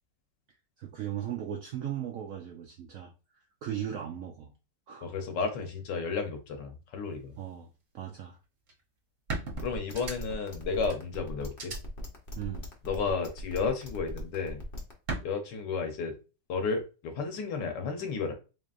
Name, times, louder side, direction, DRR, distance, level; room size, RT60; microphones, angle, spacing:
voice 1, 0.8-3.1 3.6-4.5 4.9-5.1 7.4-7.7 7.9-8.4 12.4-12.7, right 10 dB, 75° right, 2 dB, 0.7 m, -37 dB
voice 2, 5.0-7.3 9.6-11.7 12.8-14.6 15.2-16.2 16.5-18.3, left 5 dB, 75° left, 5 dB, 1.5 m, -32 dB
sound 1, 8.7-8.8 9.3-10.5 10.9-11.0 11.5-11.8 13.1-13.6 15.1-15.2, right 3 dB, 50° right, 1.2 m, -36 dB
sound 2, 9.5-14.9, equal, 40° left, 0.9 m, -40 dB
4.1 x 3.3 x 2.5 m, 0.31 s
omnidirectional pair, 2.0 m